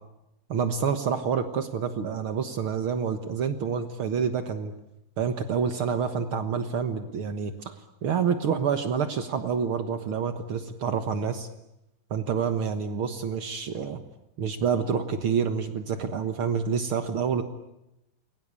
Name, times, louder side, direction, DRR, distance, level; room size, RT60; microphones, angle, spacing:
voice 1, 0.5-4.7 5.2-7.7 8.0-11.5 12.1-14.0 14.4-17.4, right 6 dB, 80° right, 9 dB, 1.1 m, -28 dB
29.0 x 22.5 x 8.4 m, 0.88 s
omnidirectional pair, 4.6 m